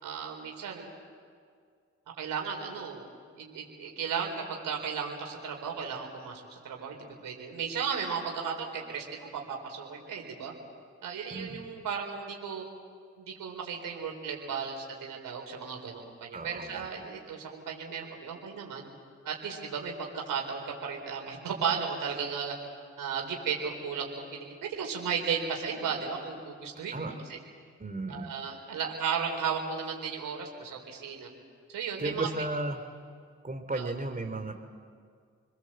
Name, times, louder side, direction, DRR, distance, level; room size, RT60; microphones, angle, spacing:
voice 1, 0.0-0.9 2.2-3.1 3.4-10.5 11.0-12.6 13.2-18.9 19.2-22.5 23.0-27.4 28.1-31.3 31.7-32.3 33.7-33.9, right 6 dB, 80° right, 1 dB, 4.4 m, -35 dB
voice 2, 11.3-11.6 16.3-16.8 26.9-27.1 27.8-28.3 32.0-32.8 33.4-34.5, right 2 dB, 25° right, 5 dB, 3.0 m, -34 dB
29.5 x 22.0 x 7.7 m, 2.1 s
supercardioid pair, 40°, 33 cm